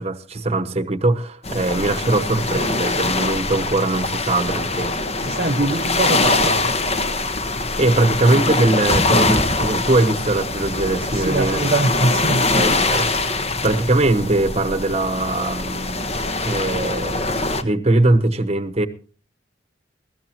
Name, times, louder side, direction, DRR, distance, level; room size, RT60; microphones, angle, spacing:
voice 1, 0.0-4.9 7.8-11.7 12.5-16.1 16.4-17.2 17.6-18.9, right 2 dB, 30° right, 1.1 m, -21 dB
sound 1, 1.4-17.6, left 2 dB, 35° left, 1.2 m, -23 dB
voice 2, 5.3-6.7 11.1-12.7, right 2 dB, 50° right, 0.8 m, -22 dB
sound 2, 8.9-9.7, equal, 15° left, 2.7 m, -27 dB
21.5 x 14.5 x 2.9 m
head